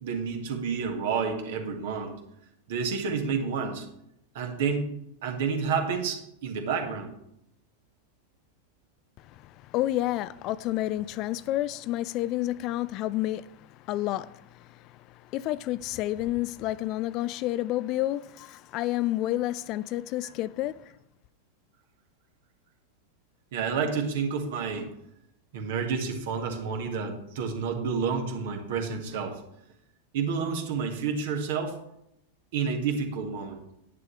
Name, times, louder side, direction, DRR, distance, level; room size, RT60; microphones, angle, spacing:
voice 1, 0.0-2.2 2.7-3.9 4.3-4.9 5.2-7.1 23.5-24.9 25.5-29.4 30.1-31.7 32.5-33.6, right 5 dB, 55° right, 1.7 m, -29 dB
voice 2, 9.2-20.9, left 15 dB, 40° left, 0.3 m, -30 dB
10.5 x 9.3 x 3.2 m
figure-of-eight pair, 90°, 0 cm